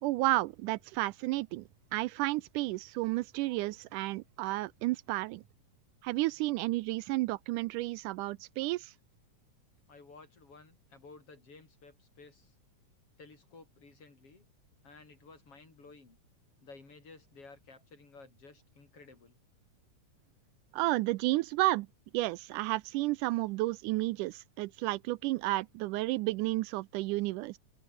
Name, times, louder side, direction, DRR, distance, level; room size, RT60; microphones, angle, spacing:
voice 1, 0.0-5.4 6.0-8.9 20.7-21.9 22.1-27.6, right 19 dB, 80° right, 2.0 m, -32 dB
voice 2, 9.9-12.5 13.2-14.4 14.8-16.2 16.6-19.4, left 4 dB, 45° left, 5.6 m, -54 dB
open air
omnidirectional pair, 3.7 m